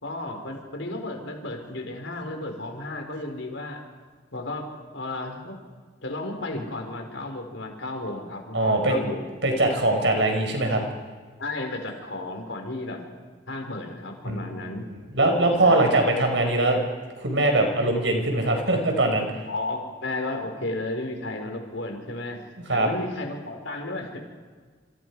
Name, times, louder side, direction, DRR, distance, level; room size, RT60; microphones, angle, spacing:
voice 1, 0.0-3.8 4.3-5.5 6.0-9.2 11.4-13.0 13.5-14.9 15.6-15.9 19.5-22.4 22.7-24.3, left 2 dB, 80° left, 3 dB, 4.5 m, -33 dB
voice 2, 8.5-9.0 9.4-10.8 14.2-14.4 15.1-16.8 17.2-19.3 22.7-22.9, right 2 dB, 75° right, 3 dB, 5.1 m, -21 dB
28.0 x 25.5 x 4.8 m, 1.5 s
head